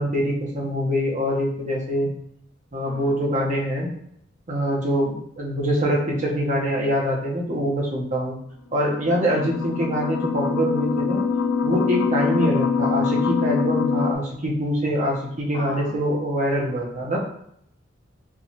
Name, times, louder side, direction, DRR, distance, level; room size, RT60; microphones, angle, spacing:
voice 1, 0.0-2.1 2.7-3.9 4.5-8.4 8.7-11.2 11.6-17.2, equal, 40° right, -1 dB, 0.8 m, -24 dB
voice 2, 2.8-3.3 15.5-16.0 17.0-17.1, left 1 dB, 40° left, -5 dB, 1.2 m, -38 dB
sound 1, 8.9-14.1, left 5 dB, 65° left, 0.3 m, -24 dB
4.5 x 2.4 x 2.8 m, 0.71 s
head